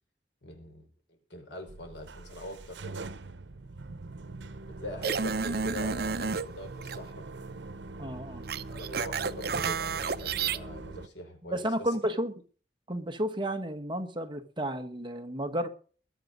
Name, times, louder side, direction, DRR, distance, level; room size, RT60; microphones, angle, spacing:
voice 1, 0.4-3.1 4.6-7.2 8.5-12.1, left 1 dB, 85° left, 4.9 m, -43 dB
sound 1, 1.7-11.1, right 3 dB, 90° right, 0.9 m, -43 dB
sound 2, 5.0-6.5 6.8-7.0 8.5-10.6, right 5 dB, 60° right, 0.7 m, -31 dB
voice 2, 8.0-8.4 11.5-12.3 12.9-15.7, equal, 25° right, 1.3 m, -32 dB
21.5 x 7.3 x 5.3 m
head